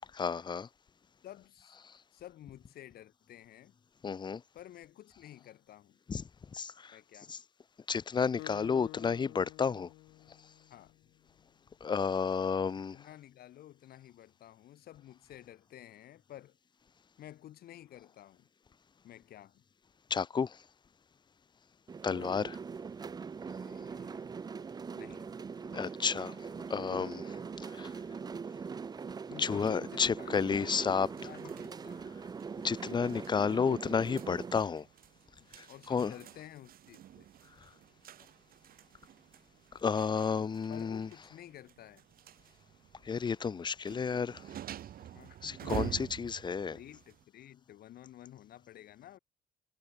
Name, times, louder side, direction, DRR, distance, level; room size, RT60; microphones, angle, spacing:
voice 1, 0.1-0.7 4.0-4.4 6.1-6.2 6.5-7.0 7.3-7.4 7.9-9.9 11.8-13.0 20.1-20.6 22.0-22.6 25.7-26.4 26.7-27.4 27.6-27.9 29.4-31.1 32.6-34.9 35.6-36.1 39.8-41.1 43.0-44.4 45.4-46.8, left 6 dB, 25° left, 0.8 m, -31 dB
voice 2, 1.2-1.8 2.1-3.7 4.5-6.0 6.9-7.4 10.7-10.9 12.6-16.5 17.2-18.5 19.0-19.6 23.6-24.3 24.9-25.2 29.3-32.2 35.4-37.3 40.4-42.1 45.1-46.2 46.7-49.2, left 12 dB, 65° left, 6.4 m, -52 dB
Acoustic guitar, 8.4-11.2, left 19 dB, 90° left, 7.4 m, -50 dB
sound 1, 21.9-34.6, right 5 dB, 25° right, 0.6 m, -42 dB
sound 2, 30.3-47.2, right 11 dB, 60° right, 6.4 m, -48 dB
cardioid pair, 110°, 17 cm